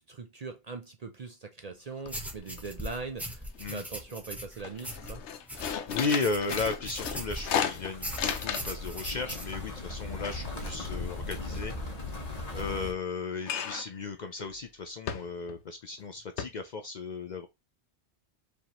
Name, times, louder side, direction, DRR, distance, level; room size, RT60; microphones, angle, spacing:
voice 1, 0.0-5.2, right 4 dB, 45° right, 0.5 m, -41 dB
sound 1, 1.7-1.8 2.1-2.6 2.9-3.7 4.1-4.3 4.6-8.9 9.2-11.6 13.4-14.0 14.4-14.5 15.1-15.6 16.0-16.1 16.4-16.5, left 8 dB, 85° left, 0.9 m, -35 dB
sound 2, 2.1-7.6 8.0-9.5, equal, ahead, 0.7 m, -40 dB
voice 2, 5.9-11.7 12.5-17.5, left 4 dB, 55° left, 0.5 m, -35 dB
sound 3, 6.9-12.9, left 2 dB, 40° left, 1.0 m, -39 dB
5.0 x 3.4 x 2.9 m
omnidirectional pair, 1.1 m